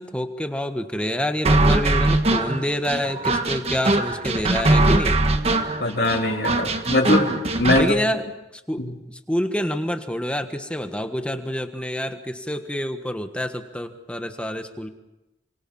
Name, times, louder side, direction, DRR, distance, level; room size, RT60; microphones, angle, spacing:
voice 1, 0.0-5.2 7.8-8.2 8.5-14.9, equal, 5° left, 7 dB, 1.4 m, -27 dB
sound 1, 1.4-7.9, right 2 dB, 35° right, 1.6 m, -21 dB
voice 2, 5.8-7.9 8.8-8.9, left 1 dB, 60° left, -3 dB, 3.7 m, -21 dB
28.0 x 25.5 x 5.6 m, 0.99 s
head